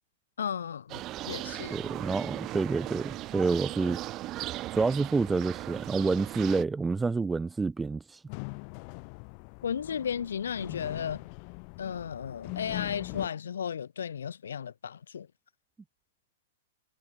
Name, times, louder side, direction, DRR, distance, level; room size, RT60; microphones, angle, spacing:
voice 1, 0.4-1.8 9.6-11.3 11.8-15.3, left 8 dB, 85° left, 0.3 m, -34 dB
sound 1, 0.9-6.6, right 16 dB, 30° right, 1.0 m, -38 dB
voice 2, 1.7-4.0 4.7-8.2, right 4 dB, 10° right, 0.3 m, -28 dB
sound 2, 8.3-13.3, left 40 dB or more, 45° left, 1.4 m, -41 dB
hypercardioid pair, 135°, 0 cm